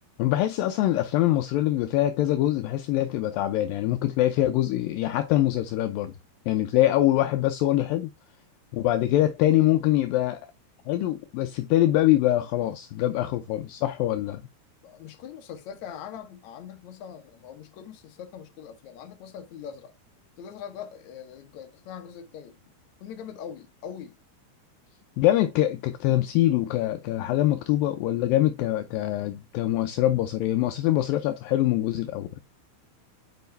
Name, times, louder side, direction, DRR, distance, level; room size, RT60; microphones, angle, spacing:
voice 1, 0.2-6.2 6.5-8.1 8.7-10.4 10.9-14.4 25.2-32.4, left 14 dB, 80° left, 2.1 m, -24 dB
voice 2, 14.8-19.9 20.4-22.6 23.0-24.2, left 8 dB, 60° left, 2.0 m, -42 dB
9.3 x 4.8 x 3.4 m
omnidirectional pair, 4.6 m